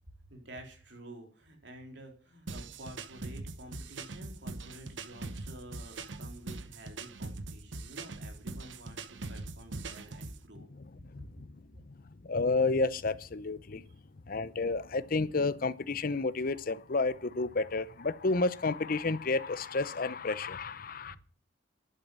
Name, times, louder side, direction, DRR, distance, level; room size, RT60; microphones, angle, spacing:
voice 1, 0.3-10.7 11.2-11.3 21.1-21.2, right 1 dB, 70° right, 3.8 m, -50 dB
sound 1, 2.5-10.4, right 3 dB, 85° right, 1.1 m, -42 dB
voice 2, 11.1-11.6 12.2-13.8 14.3-21.2, left 3 dB, 50° left, 0.7 m, -31 dB
11.0 x 9.0 x 7.5 m
head